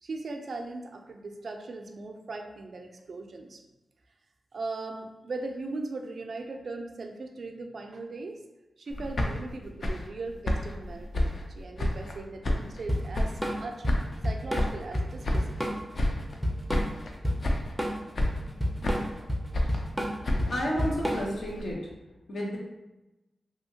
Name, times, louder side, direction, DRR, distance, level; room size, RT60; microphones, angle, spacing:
voice 1, 0.0-3.6 4.5-8.4 8.8-11.3 11.6-13.8 14.2-15.8, right 3 dB, 65° right, 3 dB, 0.4 m, -39 dB
sound 1, 8.9-12.2 12.4-13.6 13.9-15.7 15.9-16.4 16.7-17.2 17.4-17.9 18.1-19.2 19.5-21.7, left 1 dB, 60° left, 0.4 m, -31 dB
Drum kit / Drum, 12.9-21.5, equal, ahead, 0.4 m, -30 dB
voice 2, 20.3-21.8 22.3-22.6, equal, 80° left, -4 dB, 0.8 m, -31 dB
2.8 x 2.7 x 2.7 m, 1.0 s
wide cardioid pair, 85°, 0 cm